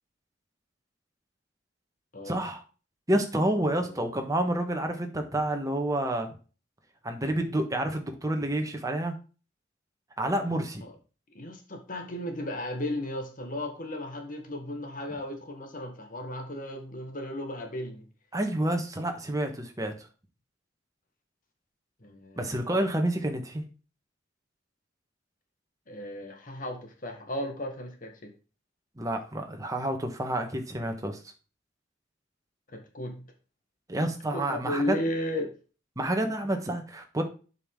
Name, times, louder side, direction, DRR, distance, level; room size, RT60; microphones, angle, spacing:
voice 1, 2.2-2.6 3.1-6.3 7.0-9.1 10.2-10.8 18.3-19.9 22.4-23.6 29.0-31.2 33.9-34.9 36.0-37.2, right 1 dB, 20° right, 4 dB, 1.3 m, -29 dB
voice 2, 11.3-18.0 22.0-22.7 25.9-28.3 32.7-33.2 34.3-35.5, left 1 dB, 45° left, 4 dB, 1.7 m, -35 dB
8.0 x 5.6 x 3.7 m, 0.34 s
head